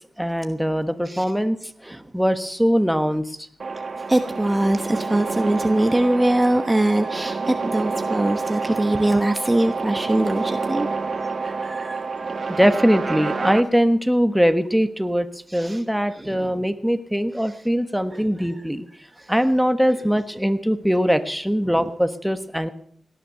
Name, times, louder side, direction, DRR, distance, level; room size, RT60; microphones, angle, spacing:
voice 1, 0.2-1.6 1.8-3.4 12.6-15.3 15.5-18.9 19.3-22.7, equal, ahead, 9 dB, 1.3 m, -21 dB
voice 2, 1.8-2.1 4.1-10.9 11.2-12.6 15.5-15.8 16.1-16.6 17.4-17.6 18.1-18.6 19.2-19.3 21.7-21.9, right 1 dB, 15° right, 7 dB, 1.1 m, -23 dB
sound 1, 3.6-13.6, right 4 dB, 55° right, 1.4 m, -28 dB
18.0 x 10.0 x 6.8 m, 0.64 s
cardioid pair, 70°, 0 cm